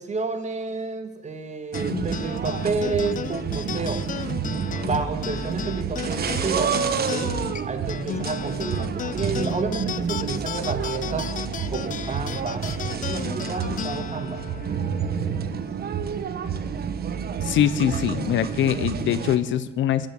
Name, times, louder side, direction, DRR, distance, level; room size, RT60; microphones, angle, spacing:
voice 1, 0.0-4.0 4.8-6.8 7.1-7.4 7.7-11.3 11.7-12.7 13.0-14.4, right 4 dB, 35° right, 8 dB, 1.9 m, -30 dB
sound 1, 1.7-16.5, left 9 dB, 40° left, 0.4 m, -35 dB
sound 2, 1.7-19.4, right 7 dB, 50° right, 1.1 m, -29 dB
voice 2, 17.4-20.1, left 10 dB, 75° left, 15 dB, 0.8 m, -23 dB
17.0 x 7.8 x 8.5 m, 1.1 s
cardioid pair, 90°, 20 cm